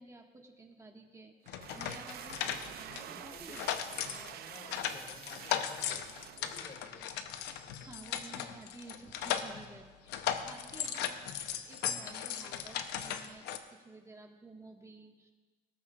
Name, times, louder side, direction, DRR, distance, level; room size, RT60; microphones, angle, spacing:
voice 1, 0.0-3.7 7.8-10.1 10.4-11.2 11.6-15.3, right 3 dB, 15° right, 1 dB, 1.6 m, -53 dB
sound 1, 1.4-7.0, right 11 dB, 65° right, 0.6 m, -48 dB
sound 2, 1.5-3.1 3.4-9.8 10.1-13.6, left 9 dB, 90° left, 0.8 m, -37 dB
voice 2, 1.6-2.1 2.9-7.1 7.7-7.9 10.5-10.9, left 2 dB, 45° left, 2 dB, 2.2 m, -55 dB
18.5 x 13.0 x 2.4 m, 1.3 s
cardioid pair, 110°, 17 cm